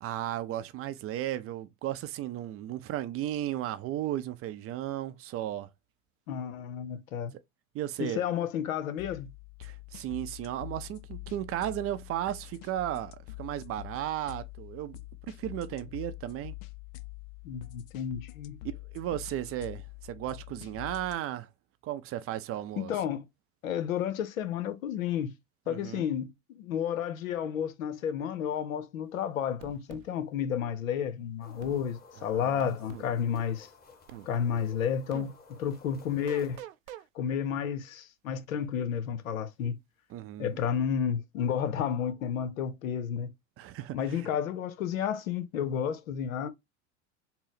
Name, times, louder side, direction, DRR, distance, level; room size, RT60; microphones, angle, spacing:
voice 1, 0.0-5.7 7.7-8.2 9.6-15.0 15.3-16.5 18.6-21.5 21.8-22.9 25.7-26.1 32.3-32.5 40.1-40.6 43.6-44.3, right 13 dB, 35° right, 0.5 m, -35 dB
voice 2, 6.3-7.3 8.0-9.3 17.4-18.6 22.8-23.3 23.6-25.3 25.7-33.7 34.3-35.3 35.6-36.6 37.1-39.8 40.4-43.3 43.9-46.5, left 8 dB, 85° left, 0.8 m, -31 dB
sound 1, 9.0-21.2, left 20 dB, 55° left, 0.5 m, -45 dB
sound 2, 29.6-30.1 31.6-31.8 32.6-33.1 34.1-34.3 35.1-35.3 36.3-37.1, right 12 dB, 85° right, 0.5 m, -44 dB
sound 3, 31.4-36.6, left 4 dB, 25° left, 1.3 m, -54 dB
3.9 x 2.0 x 4.0 m
hypercardioid pair, 95°, 40 cm